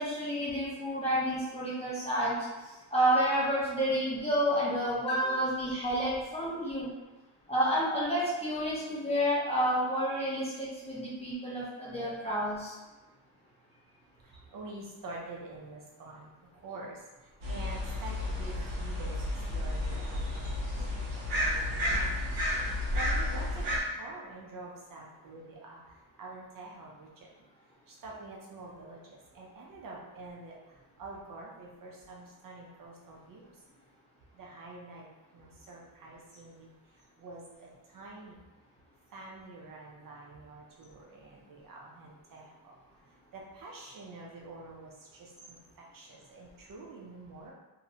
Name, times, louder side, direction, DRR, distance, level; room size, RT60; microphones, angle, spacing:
voice 1, 0.0-2.4 2.9-6.9 7.5-12.7, equal, 15° left, -8 dB, 0.4 m, -29 dB
voice 2, 14.2-17.0 17.5-19.1 19.5-22.3 22.7-25.8 26.2-27.3 27.9-30.6 31.0-33.5 34.3-35.1 35.3-36.7 37.2-38.4 39.1-42.5 43.3-45.6 45.9-47.5, right 3 dB, 45° right, -3 dB, 0.4 m, -47 dB
sound 1, 17.4-23.8, left 1 dB, 75° right, 0.9 m, -32 dB
2.7 x 2.0 x 2.6 m, 1.1 s
cardioid pair, 140°, 48 cm